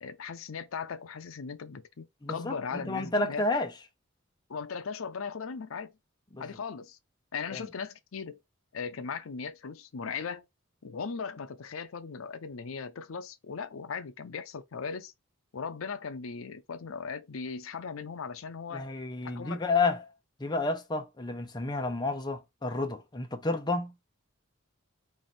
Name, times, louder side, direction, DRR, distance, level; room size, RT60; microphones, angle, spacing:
voice 1, 0.0-3.5 4.5-5.9 6.4-7.0 7.3-8.4 8.7-10.4 10.8-15.1 15.5-18.9 19.2-19.6, left 5 dB, 75° left, 0.6 m, -38 dB
voice 2, 2.2-3.7 6.3-6.4 7.5-7.6 18.7-20.0 20.4-23.9, left 3 dB, 20° left, 0.8 m, -30 dB
4.7 x 2.6 x 4.2 m
head